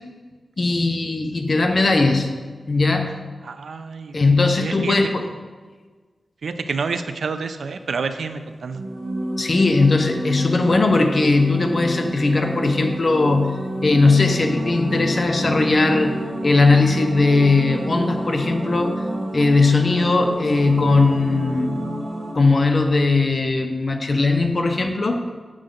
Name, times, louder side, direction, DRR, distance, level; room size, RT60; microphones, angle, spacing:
voice 1, 0.6-2.3 2.7-3.1 4.1-5.2 9.4-13.5 13.8-16.2 16.4-19.0 19.3-21.8 22.3-25.2, left 3 dB, 40° left, 5 dB, 0.8 m, -18 dB
voice 2, 3.4-4.2 4.6-5.0 6.4-8.8, right 5 dB, 85° right, 9 dB, 0.5 m, -28 dB
sound 1, 8.7-22.3, right 1 dB, 50° right, 1.8 m, -29 dB
7.6 x 7.4 x 3.8 m, 1.4 s
wide cardioid pair, 130°, 0 cm